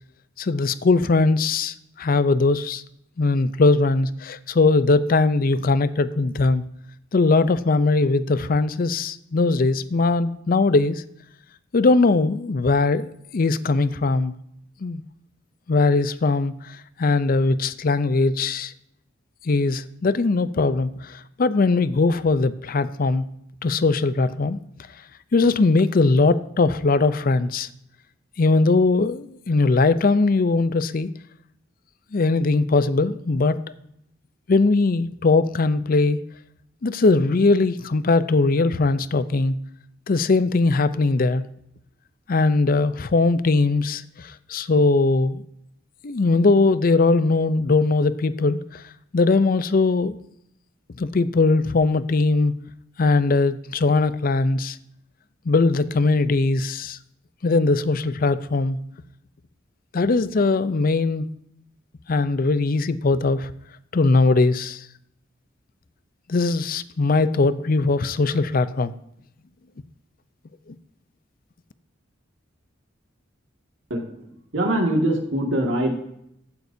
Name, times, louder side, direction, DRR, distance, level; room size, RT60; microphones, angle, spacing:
voice 1, 0.4-2.8 3.2-6.6 7.1-11.0 11.7-14.3 14.8-15.0 15.7-18.7 19.4-23.3 23.6-24.6 25.3-27.7 28.4-31.1 32.1-33.6 34.5-36.2 36.8-39.6 40.1-41.4 42.3-44.0 44.5-45.4 46.0-48.8 49.1-50.2 51.0-52.5 53.0-54.8 55.5-57.0 57.4-58.8 59.9-61.3 62.1-63.5 63.9-64.8 66.3-68.9, left 3 dB, 50° left, 14 dB, 0.5 m, -20 dB
voice 2, 73.9-74.3 74.5-76.0, right 1 dB, 85° right, 0 dB, 2.0 m, -23 dB
14.5 x 9.4 x 2.7 m, 0.75 s
head